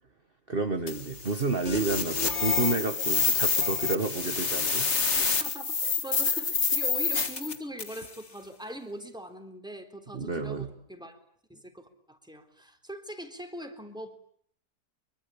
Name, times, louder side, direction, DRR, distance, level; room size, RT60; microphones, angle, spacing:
voice 1, 0.5-4.9 10.1-10.7, right 3 dB, 35° right, 7 dB, 1.7 m, -30 dB
sound 1, 0.9-8.1, left 5 dB, 45° left, 2.0 m, -28 dB
voice 2, 5.2-11.2 11.5-14.2, equal, ahead, 5 dB, 3.7 m, -42 dB
25.0 x 23.5 x 8.7 m, 0.65 s
omnidirectional pair, 1.7 m